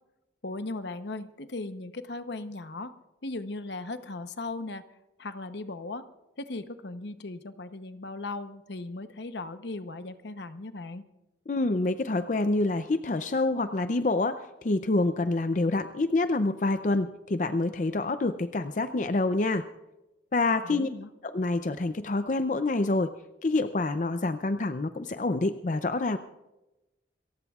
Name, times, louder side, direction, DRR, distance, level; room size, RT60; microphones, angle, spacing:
voice 1, 0.4-2.9 3.2-4.8 5.2-6.1 6.4-11.1 20.6-21.1, left 2 dB, 70° left, 10 dB, 0.8 m, -37 dB
voice 2, 11.5-19.6 20.3-20.9 21.2-23.1 23.4-26.2, left 2 dB, 45° left, 9 dB, 0.5 m, -27 dB
28.0 x 15.0 x 2.4 m, 1.0 s
head